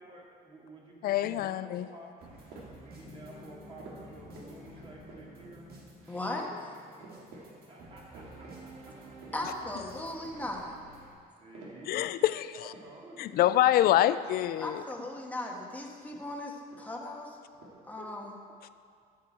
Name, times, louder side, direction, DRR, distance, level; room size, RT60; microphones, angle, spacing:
voice 1, 0.0-2.2 2.7-5.7 7.6-9.2 10.0-10.1 11.4-12.1 12.5-13.5 18.0-18.7, right 1 dB, 30° right, -3 dB, 2.5 m, -51 dB
voice 2, 1.0-1.8 11.9-12.7 13.2-14.8, left 13 dB, 65° left, 14 dB, 0.4 m, -26 dB
sound 1, 2.2-11.1, right 3 dB, 65° right, 2.4 m, -52 dB
sound 2, 2.3-2.9 3.8-4.6 4.9-5.6 6.0-6.3 6.6-6.7 7.0-7.5 7.8-8.6 8.9-9.8 10.1-10.8 11.2-12.4 12.7-13.0 13.3-13.6 13.9-14.1 14.4-15.2 15.9-17.1 17.3-17.7, right 2 dB, 80° right, 2.2 m, -52 dB
Piano, 3.0-8.1, left 6 dB, 40° left, 1.2 m, -55 dB
voice 3, 6.1-6.7 9.3-10.7 14.6-17.4 17.9-18.3, left 1 dB, 10° left, 0 dB, 1.4 m, -37 dB
12.5 x 7.5 x 4.4 m, 2.4 s
cardioid pair, 110°, 17 cm